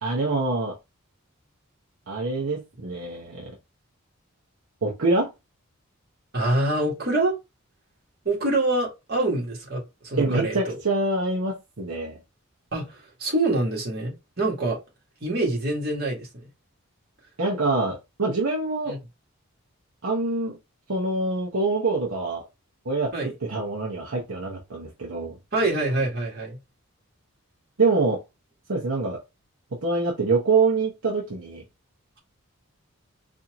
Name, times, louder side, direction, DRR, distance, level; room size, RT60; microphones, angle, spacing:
voice 1, 0.0-0.8 2.1-3.5 4.8-5.3 10.2-12.2 17.4-19.0 20.0-20.6 20.9-22.4 22.8-25.4 27.8-28.2 28.7-29.2 29.7-31.6, right 3 dB, 70° right, 0.9 m, -25 dB
voice 2, 6.3-7.3 8.3-10.8 12.7-14.8 15.2-16.5 18.9-19.0 23.1-23.3 25.5-26.6, right 2 dB, 50° right, 1.8 m, -25 dB
4.3 x 2.7 x 2.9 m
head